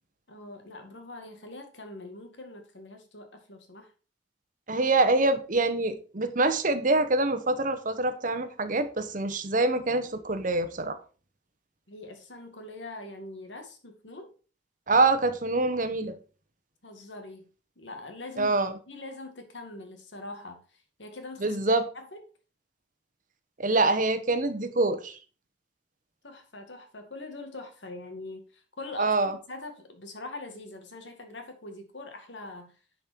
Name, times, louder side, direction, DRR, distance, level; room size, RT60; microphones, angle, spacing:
voice 1, 0.3-3.9 11.9-14.3 16.8-17.4 17.8-18.6 18.9-21.6 21.9-22.2 26.2-32.7, left 2 dB, 90° left, 2.1 m, -43 dB
voice 2, 4.7-11.0 14.9-16.2 18.4-18.7 21.4-21.8 23.6-25.2 29.0-29.4, right 2 dB, 45° right, 1.1 m, -25 dB
10.5 x 5.3 x 4.5 m
head